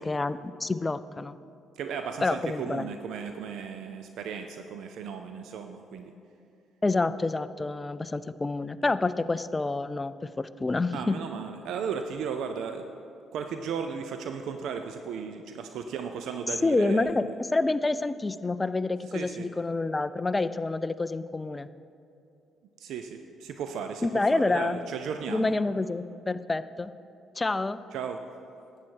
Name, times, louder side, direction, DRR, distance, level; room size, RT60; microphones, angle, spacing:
voice 1, 0.0-1.4 2.2-2.9 6.8-11.2 16.6-17.3 17.5-21.7 24.0-24.8 25.3-26.9 27.4-27.8, left 3 dB, 20° left, 14 dB, 0.4 m, -28 dB
voice 2, 1.8-6.1 10.9-12.9 13.3-17.1 19.1-19.5 22.8-25.5 27.9-28.2, right 6 dB, 75° right, 6 dB, 0.5 m, -35 dB
11.5 x 8.7 x 4.6 m, 2.6 s
supercardioid pair, 75°, 0 cm